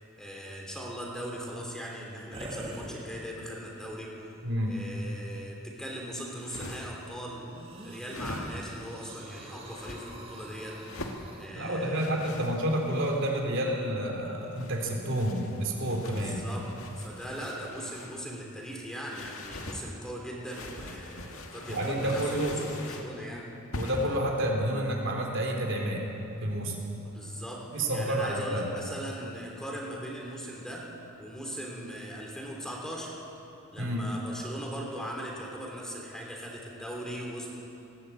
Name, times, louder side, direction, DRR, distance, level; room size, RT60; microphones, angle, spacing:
voice 1, 0.2-4.1 4.6-7.5 7.8-10.8 11.4-12.4 16.1-16.7 17.0-23.5 27.0-30.9 31.2-33.2 33.7-37.5, equal, 5° left, -2 dB, 3.0 m, -39 dB
sound 1, 2.3-3.6 4.2-4.3 7.5-11.5, right 1 dB, 25° right, 2.2 m, -45 dB
voice 2, 4.4-4.8 11.5-16.4 21.7-22.6 23.7-26.0 26.4-26.8 27.7-28.6 33.8-34.0, right 1 dB, 60° right, 0 dB, 3.4 m, -29 dB
sound 2, 6.2-7.1 8.0-8.9 9.6-10.0 10.8-11.2 12.0-13.4 14.4-18.2 19.1-19.8 20.4-23.1 23.7-24.2, left 2 dB, 70° left, 2.0 m, -43 dB
19.5 x 17.0 x 8.2 m, 2.8 s
head